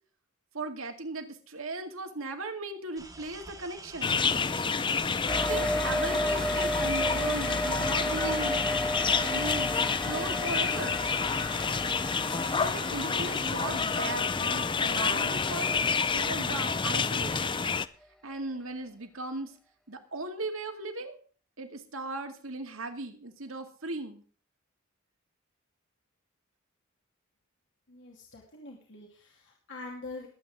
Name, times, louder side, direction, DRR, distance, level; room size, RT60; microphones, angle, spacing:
voice 1, 0.5-4.2 5.3-8.7 9.2-9.8 10.0-11.1 12.5-15.8 16.1-17.6 18.2-19.5 19.9-21.2 21.6-24.2, right 2 dB, 65° right, 5 dB, 2.2 m, -37 dB
sound 1, 3.0-14.1, right 2 dB, 15° right, 1.8 m, -47 dB
sound 2, 4.0-17.9, left 5 dB, 25° left, 0.5 m, -29 dB
sound 3, 5.3-17.1, left 1 dB, 5° left, 1.2 m, -34 dB
voice 2, 27.9-30.3, left 3 dB, 60° left, -1 dB, 2.7 m, -44 dB
21.0 x 8.5 x 3.7 m, 0.42 s
head